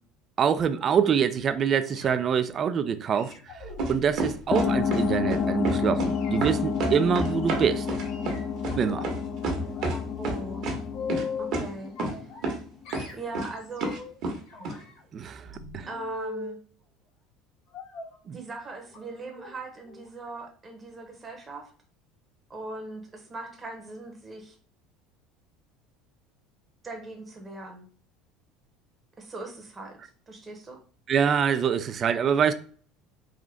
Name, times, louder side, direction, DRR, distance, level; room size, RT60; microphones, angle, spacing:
voice 1, 0.4-3.5 3.9-7.9 8.8-9.1 15.1-15.5 15.7-15.9 18.3-18.4 31.1-32.5, right 7 dB, 35° right, 0.4 m, -25 dB
sound 1, 1.8-2.4 3.1-5.6 6.0-6.4 7.1-7.4 8.0-9.1 9.5-10.0 10.3-11.6 12.0-12.6 12.9-14.2 14.5-16.6 17.7-18.2 18.9-19.0 19.3-19.5 19.9-20.1 20.4-20.5, left 4 dB, 70° left, 1.5 m, -40 dB
sound 2, 3.8-5.0 5.3-6.1 6.4-10.0 10.2-10.8 11.1-11.2 11.5-11.6 12.0-12.2 12.4-12.6 12.9-13.5 13.8-14.4 14.6-14.7, right 2 dB, 55° right, 1.2 m, -29 dB
sound 3, 4.5-12.6, left 6 dB, 30° left, 0.3 m, -30 dB
voice 2, 9.9-10.7 11.4-11.9 13.1-13.9 15.9-16.6 18.3-21.7 22.5-24.5 26.8-27.8 29.2-30.0 30.3-30.8, right 2 dB, 20° right, 0.9 m, -40 dB
3.7 x 2.5 x 3.3 m
supercardioid pair, 115°, 0 cm